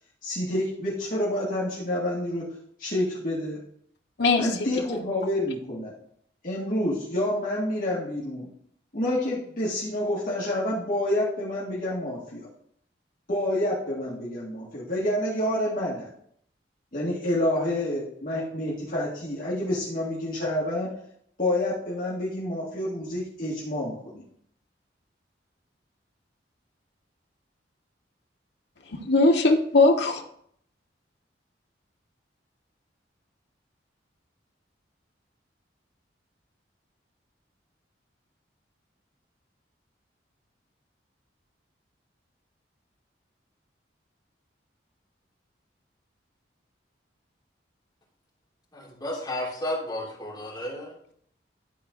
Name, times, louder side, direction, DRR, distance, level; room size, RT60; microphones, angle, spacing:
voice 1, 0.2-2.5 2.8-3.6 4.4-6.0 6.4-8.5 8.9-12.5 13.3-16.1 16.9-21.0 21.4-24.2, left 1 dB, 45° left, -8 dB, 2.0 m, -28 dB
voice 2, 4.2-4.7 28.9-30.2, left 3 dB, 65° left, 2 dB, 1.3 m, -20 dB
voice 3, 48.7-50.9, left 1 dB, 20° left, -7 dB, 3.1 m, -32 dB
12.0 x 4.4 x 3.9 m, 0.66 s
head